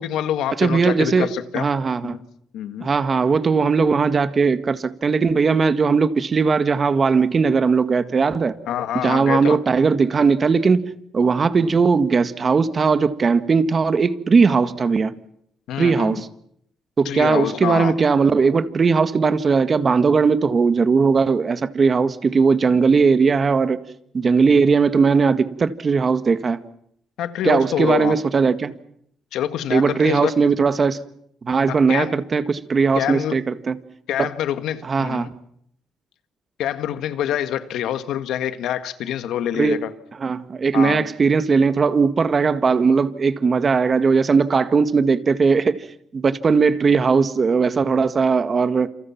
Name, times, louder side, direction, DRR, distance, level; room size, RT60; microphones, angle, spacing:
voice 1, 0.0-1.7 2.0-2.3 2.5-2.9 8.7-9.6 15.7-16.2 17.1-18.0 27.2-28.2 29.3-30.3 31.7-32.1 33.0-33.4 34.1-35.3 36.6-39.9 40.7-41.1, left 10 dB, 85° left, 1.8 m, -26 dB
voice 2, 0.6-1.3 1.5-2.2 2.8-8.5 8.9-15.1 15.8-16.3 17.0-23.8 24.1-26.6 27.4-28.8 29.7-31.0 31.4-33.8 34.2-34.3 34.9-35.3 39.5-39.8 40.2-45.8 46.1-48.9, right 5 dB, 40° right, 1.7 m, -18 dB
28.5 x 27.5 x 6.0 m
cardioid pair, 90°, 0 cm